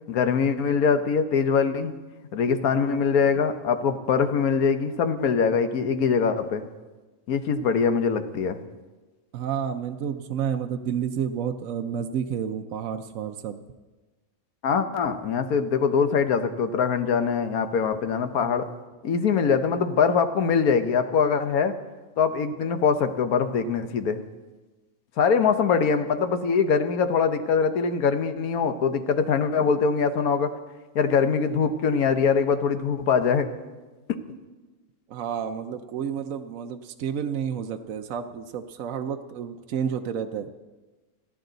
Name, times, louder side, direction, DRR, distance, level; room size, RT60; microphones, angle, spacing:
voice 1, 0.1-1.9 2.3-6.6 7.3-8.6 14.6-18.7 19.0-21.7 22.2-24.2 25.2-30.5 30.9-33.5, left 6 dB, 90° left, 9 dB, 1.4 m, -23 dB
voice 2, 9.3-13.6 35.1-40.5, right 8 dB, 70° right, 6 dB, 1.1 m, -30 dB
28.0 x 10.0 x 4.0 m, 1.2 s
omnidirectional pair, 1.5 m